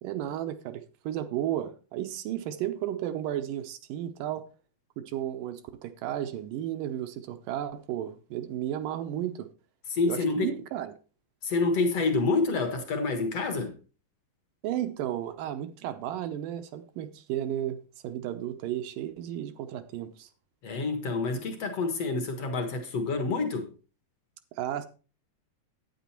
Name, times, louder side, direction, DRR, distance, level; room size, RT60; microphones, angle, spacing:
voice 1, 0.0-4.5 5.0-9.5 10.1-10.9 14.6-17.8 18.0-20.3 24.5-24.9, right 11 dB, 75° right, 2.2 m, -33 dB
voice 2, 9.9-10.6 11.4-13.8 20.6-23.7, left 3 dB, 55° left, 2.0 m, -28 dB
9.3 x 9.1 x 4.4 m
omnidirectional pair, 4.2 m